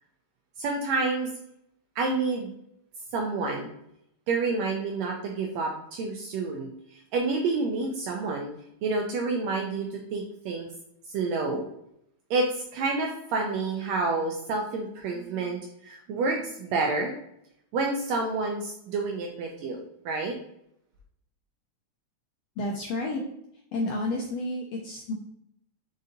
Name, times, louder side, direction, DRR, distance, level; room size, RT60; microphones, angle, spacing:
voice 1, 0.6-1.3 2.0-2.5 3.1-3.7 4.3-8.5 8.8-10.7 11.1-11.7 12.3-17.1 17.7-20.3, right 3 dB, 80° right, 1 dB, 1.5 m, -29 dB
voice 2, 22.6-23.2 23.7-25.1, left 2 dB, 85° left, -1 dB, 1.4 m, -30 dB
5.2 x 3.8 x 2.6 m, 0.77 s
omnidirectional pair, 3.5 m